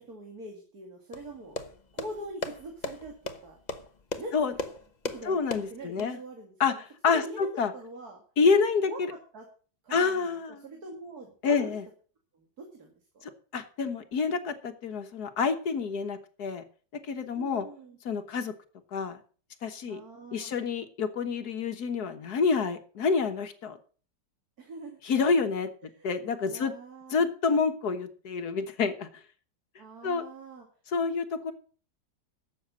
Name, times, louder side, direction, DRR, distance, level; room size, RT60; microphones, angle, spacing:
voice 1, 0.0-1.6 1.9-3.6 4.2-4.4 5.0-5.4 5.7-8.2 8.9-9.0 9.3-9.5 9.8-11.7 12.3-12.5 12.7-13.3 17.3-18.0 19.9-20.5 24.6-25.0 25.9-26.1 26.5-27.3 29.8-30.7, right 2 dB, 60° right, 2 dB, 2.8 m, -43 dB
sound 1, 1.1-6.1, left 3 dB, 30° left, 1.0 m, -38 dB
voice 2, 5.3-6.2 6.6-7.7 8.4-9.1 9.9-10.6 11.4-11.8 13.5-16.6 17.1-17.7 18.1-18.5 18.9-19.2 19.6-20.0 20.3-23.8 25.0-25.7 26.0-26.7 27.1-29.1 30.0-30.2 30.9-31.5, left 5 dB, 65° left, 9 dB, 1.7 m, -28 dB
12.5 x 7.9 x 7.4 m, 0.41 s
omnidirectional pair, 1.8 m